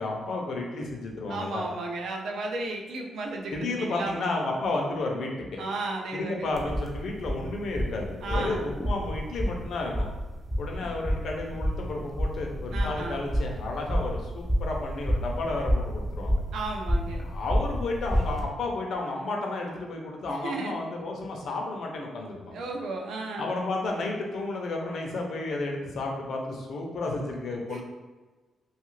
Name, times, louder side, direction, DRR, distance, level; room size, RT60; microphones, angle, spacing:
voice 1, 0.0-1.6 3.5-5.6 6.1-10.1 10.6-16.4 17.2-22.6 23.4-27.8, left 2 dB, 60° left, 0 dB, 0.5 m, -32 dB
voice 2, 1.3-4.2 5.6-6.5 8.2-8.7 12.7-13.2 16.5-17.3 20.3-20.8 22.5-23.5 27.7-27.8, right 2 dB, 70° right, 1 dB, 0.4 m, -34 dB
sound 1, 6.5-18.4, equal, ahead, 0.4 m, -29 dB
2.7 x 2.4 x 3.1 m, 1.3 s
wide cardioid pair, 170°, 0 cm